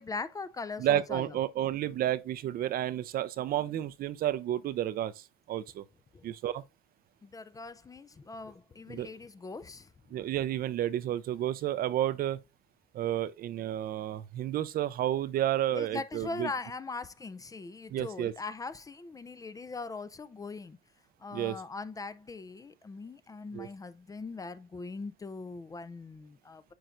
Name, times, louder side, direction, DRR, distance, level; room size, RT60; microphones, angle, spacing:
voice 1, 0.0-1.4 6.1-6.3 7.2-9.9 15.7-20.8 21.2-26.6, left 3 dB, 20° left, 0.4 m, -40 dB
voice 2, 0.8-5.8 6.2-6.6 8.9-9.1 10.1-12.4 12.9-16.5 17.9-18.3 21.3-21.6 23.5-23.7, right 12 dB, 60° right, 0.6 m, -31 dB
9.2 x 4.5 x 2.5 m
cardioid pair, 110°, 17 cm